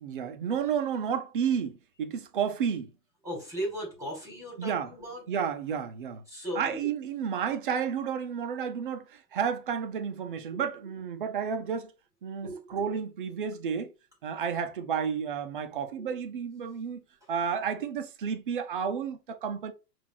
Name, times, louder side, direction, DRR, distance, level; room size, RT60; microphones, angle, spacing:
voice 1, 0.0-2.9 4.6-4.9 5.3-6.2 6.5-11.9 12.2-13.9 14.2-17.0 17.3-19.7, right 7 dB, 35° right, 0.4 m, -31 dB
voice 2, 3.2-5.2 6.3-6.9 10.5-10.6 12.4-12.6, equal, 5° right, 1.4 m, -36 dB
5.8 x 2.5 x 3.6 m
supercardioid pair, 160°, 49 cm